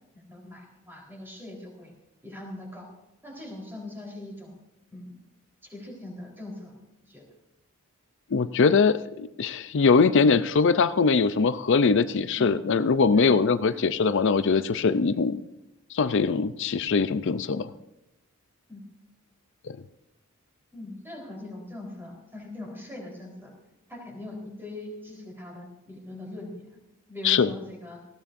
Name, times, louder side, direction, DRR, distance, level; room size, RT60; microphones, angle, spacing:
voice 1, 0.1-1.9 2.2-2.9 3.2-4.5 4.9-5.2 5.6-7.2 12.4-12.6 13.1-13.4 13.7-13.9 18.7-18.8 20.7-23.5 23.9-26.8 27.1-28.0, left 1 dB, 10° right, -1 dB, 3.9 m, -41 dB
voice 2, 8.3-15.4 15.9-17.7 19.7-19.8 27.2-27.5, left 5 dB, 55° left, 13 dB, 0.5 m, -22 dB
19.5 x 15.5 x 2.6 m, 0.92 s
head